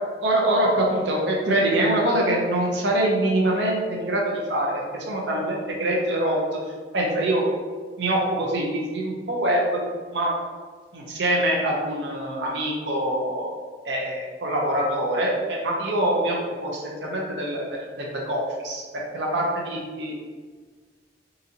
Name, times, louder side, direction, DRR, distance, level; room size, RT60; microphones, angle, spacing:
voice 1, 0.2-4.8 5.1-6.4 6.9-7.4 8.0-9.6 10.1-10.3 10.9-13.5 13.8-20.2, right 1 dB, 70° right, -2 dB, 0.7 m, -24 dB
3.9 x 2.7 x 2.7 m, 1.5 s
head